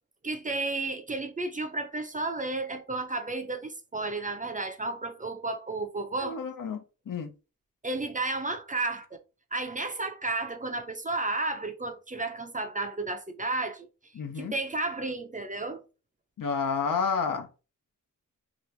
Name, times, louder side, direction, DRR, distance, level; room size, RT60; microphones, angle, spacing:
voice 1, 0.2-6.4 7.8-9.2 9.5-13.9 14.4-15.8, right 2 dB, 25° right, 0.5 m, -32 dB
voice 2, 6.2-7.3 14.1-14.6 16.4-17.5, left 5 dB, 80° left, 0.7 m, -30 dB
3.0 x 2.4 x 3.2 m
wide cardioid pair, 85°, 33 cm